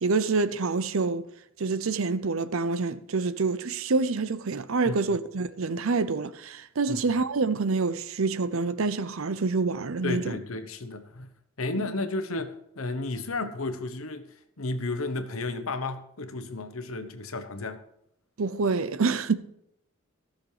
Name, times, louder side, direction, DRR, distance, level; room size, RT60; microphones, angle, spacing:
voice 1, 0.0-1.3 1.6-10.4 11.7-11.9 18.4-19.3, right 4 dB, 75° right, 0.6 m, -27 dB
voice 2, 10.0-11.3 11.6-14.3 14.6-17.8, left 2 dB, 80° left, 1.1 m, -32 dB
15.5 x 6.5 x 4.9 m
head